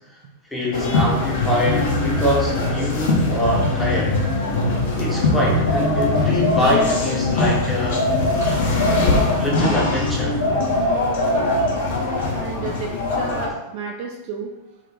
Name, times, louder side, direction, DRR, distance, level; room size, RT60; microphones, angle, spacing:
voice 1, 0.5-4.2 5.0-8.1 9.4-10.4, left 1 dB, 5° left, -5 dB, 0.7 m, -24 dB
sound 1, 0.7-13.5, left 2 dB, 55° left, 0.5 m, -22 dB
sound 2, 5.7-7.4 7.9-9.9 10.4-12.3, equal, 80° left, 0.8 m, -24 dB
voice 2, 12.3-14.5, right 5 dB, 45° right, 0 dB, 0.3 m, -32 dB
2.4 x 2.1 x 2.6 m, 0.98 s
figure-of-eight pair, 90°, 0 cm